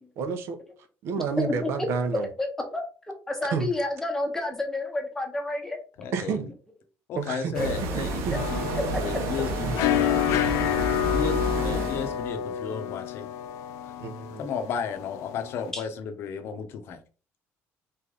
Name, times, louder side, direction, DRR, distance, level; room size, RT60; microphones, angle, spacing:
voice 1, 0.2-0.6 1.0-2.3 3.5-3.7 6.1-6.5 7.2-7.5 8.0-8.4 9.6-9.7 14.0-14.5, right 5 dB, 55° right, 8 dB, 0.8 m, -29 dB
voice 2, 1.4-1.9 2.4-2.8 3.3-5.8 7.5-8.0 8.7-8.8 11.7-11.8 15.7-15.8, left 2 dB, 10° left, 3 dB, 0.9 m, -30 dB
voice 3, 6.0-6.5 7.1-8.7 9.0-10.1 11.1-13.3 13.8-13.9 14.4-17.0, left 6 dB, 50° left, 7 dB, 0.8 m, -34 dB
sound 1, 7.5-12.3, right 3 dB, 75° right, 1.1 m, -30 dB
sound 2, 8.3-15.7, left 12 dB, 85° left, 0.4 m, -29 dB
4.1 x 3.3 x 3.8 m, 0.36 s
cardioid pair, 175°, 5 cm